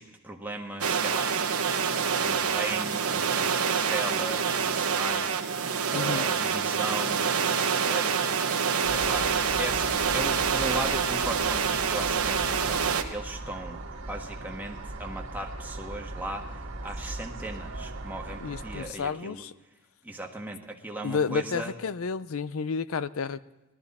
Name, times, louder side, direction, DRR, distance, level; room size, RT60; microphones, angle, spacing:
voice 1, 0.0-1.3 2.1-13.8 14.1-16.5 16.8-19.5 20.0-21.7, right 1 dB, 10° right, 0 dB, 1.5 m, -37 dB
sound 1, 0.8-13.0, right 6 dB, 90° right, 1.2 m, -26 dB
voice 2, 5.9-6.3 18.4-19.5 21.0-23.4, left 5 dB, 70° left, 16 dB, 0.5 m, -31 dB
sound 2, 8.8-18.9, right 2 dB, 60° right, 1.8 m, -39 dB
19.0 x 13.0 x 4.2 m, 1.1 s
head